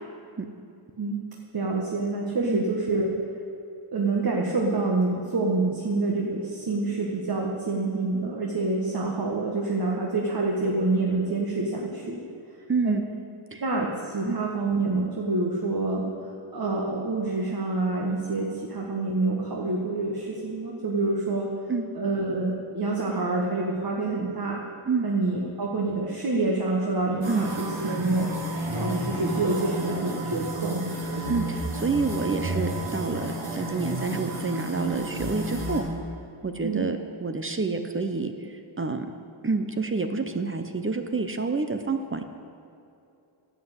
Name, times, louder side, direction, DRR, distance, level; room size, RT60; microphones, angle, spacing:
voice 1, 1.5-3.1 3.9-12.2 12.8-13.0 13.6-16.0 16.5-21.5 21.9-24.6 25.0-28.3 28.7-30.8 36.6-36.9, right 3 dB, 45° right, -2 dB, 1.7 m, -27 dB
voice 2, 12.7-13.0 13.5-13.6 14.3-14.4 21.7-21.9 24.9-25.1 27.3-27.5 31.3-35.8 36.4-38.3 38.8-39.1 39.4-42.2, right 4 dB, 25° right, 7 dB, 0.9 m, -28 dB
sound 1, 27.2-35.8, right 1 dB, 70° right, 3.3 m, -31 dB
11.0 x 7.8 x 8.2 m, 2.7 s
cardioid pair, 80°, 50 cm